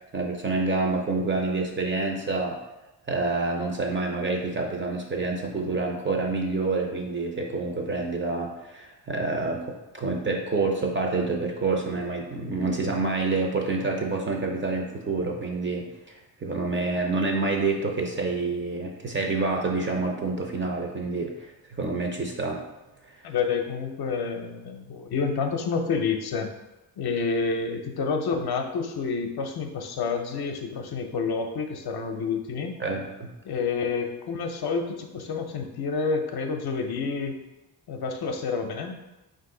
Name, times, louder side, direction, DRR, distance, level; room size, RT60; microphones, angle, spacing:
voice 1, 0.1-2.6 3.1-22.6 32.8-33.3, right 3 dB, 25° right, 1 dB, 0.5 m, -28 dB
voice 2, 23.2-26.5 27.0-32.7 33.4-37.4 37.9-38.9, left 5 dB, 60° left, 4 dB, 0.6 m, -29 dB
4.6 x 2.6 x 3.7 m, 0.99 s
wide cardioid pair, 145°, 44 cm